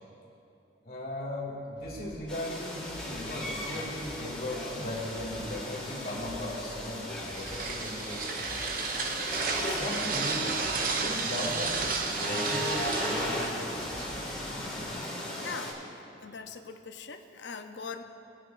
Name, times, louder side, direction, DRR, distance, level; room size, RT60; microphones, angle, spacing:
voice 1, 0.8-9.0 9.5-14.0 14.4-14.5, left 1 dB, 50° left, -4 dB, 2.4 m, -37 dB
sound 1, 1.8-14.9, equal, 30° right, 1.8 m, -51 dB
sound 2, 2.3-15.7, left 1 dB, 5° left, 1.9 m, -37 dB
sound 3, 7.0-14.5, right 4 dB, 50° right, 0.7 m, -33 dB
voice 2, 9.5-9.9 15.0-15.8 16.2-18.0, left 5 dB, 70° left, 6 dB, 0.6 m, -42 dB
20.5 x 9.1 x 2.5 m, 2.8 s
head